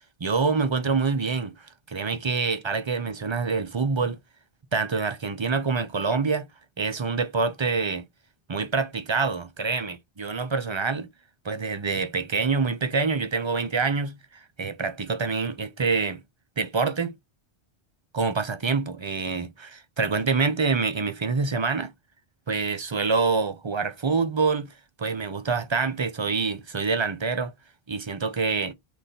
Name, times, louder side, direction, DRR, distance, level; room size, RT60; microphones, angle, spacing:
voice 1, 0.2-4.2 4.7-6.5 6.8-8.0 8.5-11.1 11.4-16.2 16.6-17.1 18.1-21.9 22.5-27.5 27.9-28.7, right 4 dB, 35° right, 0.5 m, -26 dB
3.9 x 3.0 x 4.2 m
omnidirectional pair, 1.1 m